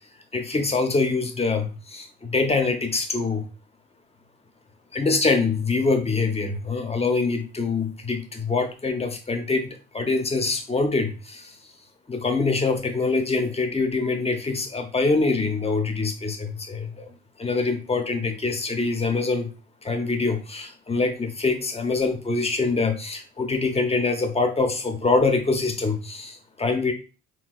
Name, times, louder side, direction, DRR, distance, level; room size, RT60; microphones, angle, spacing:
voice 1, 0.3-3.5 4.9-11.5 12.1-17.1 17.4-19.5 19.8-26.9, left 3 dB, 20° left, 6 dB, 0.9 m, -24 dB
4.6 x 3.6 x 2.4 m, 0.34 s
cardioid pair, 90°, 30 cm